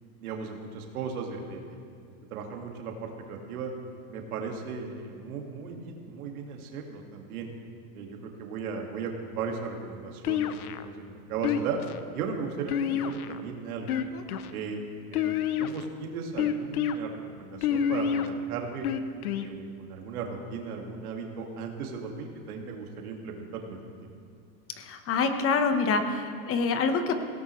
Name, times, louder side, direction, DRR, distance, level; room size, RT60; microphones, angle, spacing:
voice 1, 0.2-1.8 2.3-3.7 4.1-7.5 7.9-11.8 12.1-13.9 14.5-14.8 15.1-18.9 19.3-23.8, right 5 dB, 80° right, 1 dB, 2.2 m, -36 dB
sound 1, 10.2-10.9 11.4-12.0 12.7-13.4 13.8-14.5 15.1-15.8 16.4-17.0 17.6-18.3 18.8-19.5, left 8 dB, 85° left, 0.9 m, -28 dB
voice 2, 24.8-27.2, left 4 dB, 30° left, 7 dB, 1.2 m, -26 dB
18.5 x 17.0 x 3.2 m, 2.3 s
supercardioid pair, 130°, 43 cm